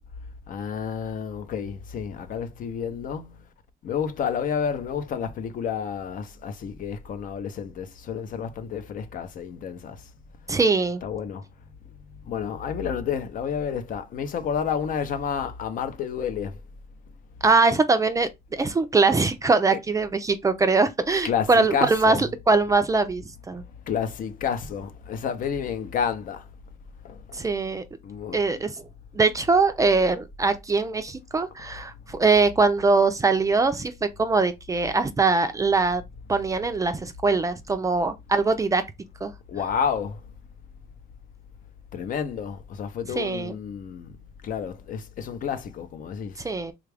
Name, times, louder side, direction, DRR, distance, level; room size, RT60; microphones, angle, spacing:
voice 1, 0.5-3.5 3.8-10.1 11.0-11.4 12.2-16.6 19.7-19.8 21.2-22.3 23.5-23.6 23.9-26.5 27.0-27.5 28.0-28.6 31.6-31.8 39.5-40.3 41.9-46.4, left 7 dB, 55° left, 0.6 m, -30 dB
voice 2, 10.5-11.0 17.4-22.2 22.5-23.6 27.3-27.8 28.3-28.8 29.1-36.0 36.3-38.8 39.2-39.3 43.2-43.5 46.4-46.7, right 3 dB, 20° right, 0.4 m, -22 dB
3.5 x 2.4 x 3.3 m
cardioid pair, 110°, 17 cm